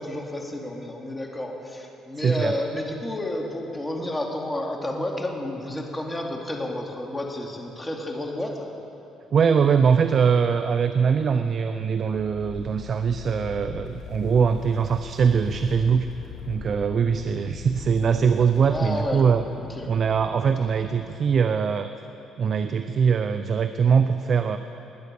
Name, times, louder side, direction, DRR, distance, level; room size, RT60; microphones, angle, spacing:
voice 1, 0.0-8.7 18.7-19.3 19.6-19.9, left 1 dB, 15° left, 1 dB, 2.5 m, -31 dB
voice 2, 2.2-2.5 9.3-16.1 16.5-19.4 19.9-21.9 22.4-24.6, right 6 dB, 50° right, 10 dB, 0.6 m, -22 dB
sound 1, 12.1-21.3, left 6 dB, 70° left, 3.4 m, -41 dB
20.5 x 9.7 x 6.9 m, 3.0 s
supercardioid pair, 75°, 0 cm